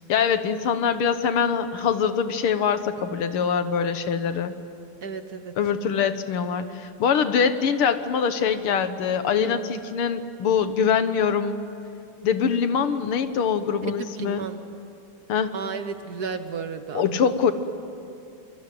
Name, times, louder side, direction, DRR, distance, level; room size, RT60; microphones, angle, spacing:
voice 1, 0.1-4.6 5.6-11.6 12.2-14.4 15.3-15.6 16.9-17.5, left 7 dB, 80° left, 10 dB, 2.1 m, -23 dB
voice 2, 5.0-5.5 9.4-9.6 13.9-14.6 15.5-17.2, right 5 dB, 55° right, 9 dB, 1.4 m, -33 dB
26.5 x 23.0 x 9.3 m, 2.8 s
omnidirectional pair, 2.4 m